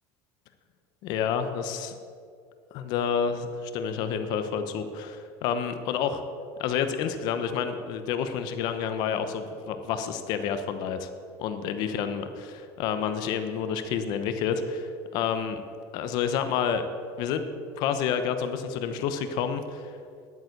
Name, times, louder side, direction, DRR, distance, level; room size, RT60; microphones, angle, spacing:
voice 1, 1.0-1.9 2.7-6.2 6.6-11.1 11.4-12.2 12.5-15.6 15.9-16.9 17.2-17.5 17.8-19.9, left 7 dB, 55° left, 9 dB, 0.9 m, -29 dB
11.0 x 9.2 x 7.9 m, 2.4 s
cardioid pair, 155°, 8 cm